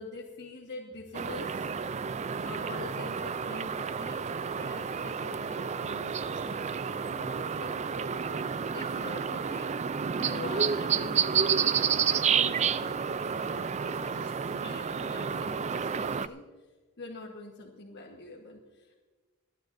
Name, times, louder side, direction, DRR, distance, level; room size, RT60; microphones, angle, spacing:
voice 1, 0.0-1.7 2.4-9.7 10.2-11.9 12.2-16.4 17.0-18.9, left 3 dB, 55° left, -2 dB, 1.4 m, -45 dB
sound 1, 1.1-16.3, right 7 dB, 30° right, 0.4 m, -30 dB
29.5 x 10.5 x 2.7 m, 1.3 s
head